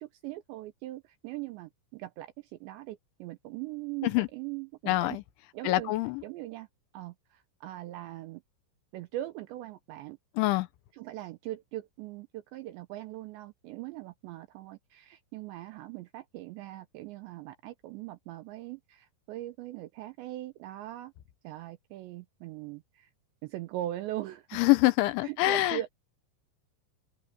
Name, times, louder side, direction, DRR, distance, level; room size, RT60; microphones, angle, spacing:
voice 1, 0.0-5.2 5.5-5.9 6.2-6.7 6.9-8.4 8.9-10.2 10.9-21.1 21.4-23.1 23.4-24.6 25.2-25.9, right 15 dB, 85° right, 2.6 m, -40 dB
voice 2, 4.9-5.2 5.6-6.2 10.4-10.7 24.5-25.8, left 18 dB, 75° left, 3.1 m, -25 dB
open air
omnidirectional pair, 5.9 m